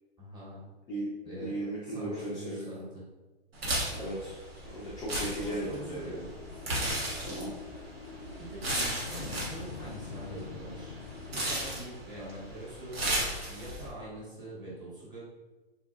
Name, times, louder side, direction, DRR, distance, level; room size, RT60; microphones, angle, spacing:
voice 1, 0.2-0.7 1.2-1.5 1.8-3.0 5.4-6.3 8.5-10.9 11.3-13.0 13.4-15.2, right 2 dB, 15° right, -8 dB, 1.2 m, -43 dB
voice 2, 1.4-2.7 3.9-4.3 4.6-6.0 7.2-7.5, right 1 dB, 15° left, -7 dB, 0.4 m, -36 dB
sound 1, 3.5-13.9, right 1 dB, 70° right, 1.3 m, -35 dB
sound 2, 5.7-11.7, left 4 dB, 75° left, 0.5 m, -45 dB
4.0 x 2.5 x 2.4 m, 1.2 s
hypercardioid pair, 130°, 31 cm